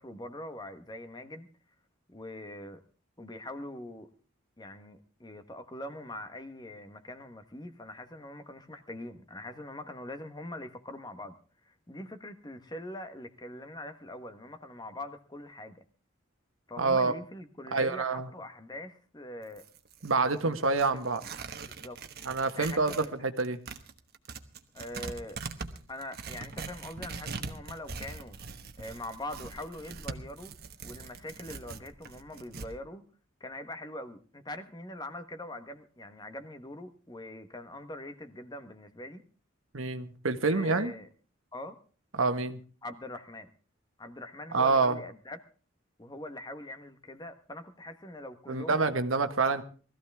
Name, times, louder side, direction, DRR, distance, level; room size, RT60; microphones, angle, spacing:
voice 1, 0.0-1.5 2.1-2.8 3.2-4.1 4.6-11.3 11.7-15.8 16.7-19.6 20.2-20.5 20.9-21.2 21.8-23.1 24.7-25.4 25.9-28.4 28.8-30.5 30.8-33.0 33.4-39.2 40.4-41.1 41.5-41.8 42.8-43.5 44.0-45.4 46.0-48.9, left 1 dB, 20° left, 9 dB, 1.2 m, -43 dB
voice 2, 16.8-17.1 17.7-18.3 20.0-21.2 22.2-23.6 39.7-40.9 42.1-42.6 44.5-45.0 48.5-49.6, right 4 dB, 85° right, 9 dB, 1.3 m, -27 dB
Tearing, 19.4-23.1 23.4-32.7, right 4 dB, 50° right, 1.2 m, -42 dB
20.0 x 14.5 x 3.5 m, 0.38 s
head